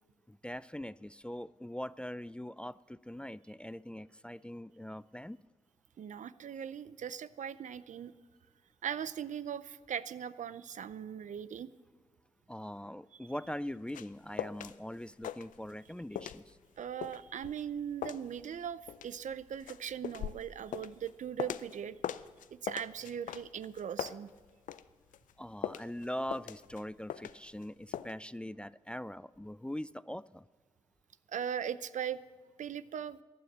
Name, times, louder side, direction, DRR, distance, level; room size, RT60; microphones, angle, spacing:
voice 1, 0.3-5.4 12.5-16.6 25.4-30.4, left 1 dB, 10° left, 18 dB, 0.3 m, -42 dB
voice 2, 6.0-8.1 8.8-11.7 16.8-22.0 22.6-24.3 31.3-32.2 32.6-33.2, right 8 dB, 70° right, 15 dB, 0.5 m, -39 dB
sound 1, 13.5-14.8 15.0-15.9 16.2-21.8 22.0-24.8 25.1-27.6 27.9-28.1, left 10 dB, 85° left, 0.4 m, -41 dB
15.5 x 9.3 x 7.3 m, 1.4 s
supercardioid pair, 45°, 13 cm